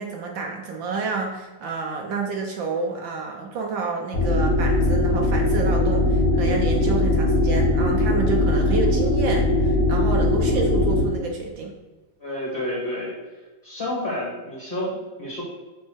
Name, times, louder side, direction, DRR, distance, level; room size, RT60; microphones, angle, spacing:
voice 1, 0.0-11.7, right 4 dB, 70° right, 1 dB, 1.6 m, -29 dB
sound 1, 4.1-11.0, left 1 dB, 55° left, 2.0 m, -20 dB
voice 2, 12.2-13.1 13.6-15.4, left 1 dB, 30° left, -6 dB, 2.0 m, -29 dB
6.3 x 4.5 x 6.3 m, 1.3 s
omnidirectional pair, 2.2 m